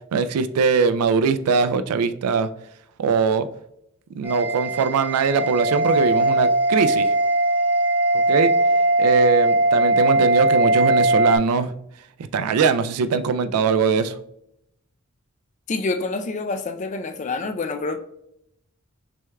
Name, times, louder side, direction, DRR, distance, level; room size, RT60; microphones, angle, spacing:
voice 1, 0.1-2.5 3.0-3.5 4.2-7.1 8.3-8.5 9.0-11.7 12.3-14.2, right 5 dB, 85° right, 0.4 m, -21 dB
sound 1, 4.2-11.4, right 2 dB, 10° right, 0.7 m, -20 dB
voice 2, 15.7-18.0, left 3 dB, 35° left, 0.3 m, -27 dB
6.1 x 3.5 x 2.2 m
head